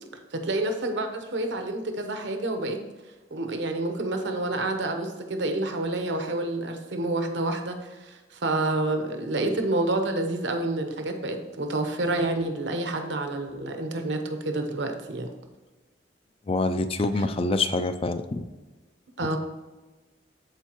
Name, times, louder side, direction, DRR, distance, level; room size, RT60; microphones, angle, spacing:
voice 1, 0.3-2.8 3.3-15.3 19.2-19.4, right 2 dB, 75° right, 6 dB, 0.9 m, -28 dB
voice 2, 16.5-18.4, left 2 dB, 30° left, 10 dB, 0.4 m, -26 dB
13.5 x 4.5 x 3.0 m, 1.2 s
head